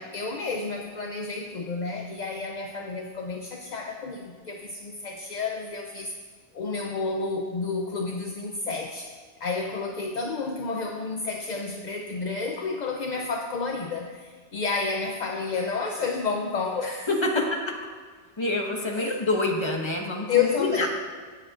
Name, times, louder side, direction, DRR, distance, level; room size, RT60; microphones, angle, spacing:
voice 1, 0.0-6.1 6.5-9.1 9.4-17.1 17.3-17.5 18.9-19.2 20.3-20.9, left 4 dB, 50° left, 2 dB, 0.6 m, -30 dB
voice 2, 17.1-17.4 18.4-20.9, left 2 dB, 25° left, 0 dB, 1.2 m, -26 dB
17.5 x 7.7 x 2.5 m, 1.5 s
omnidirectional pair, 1.2 m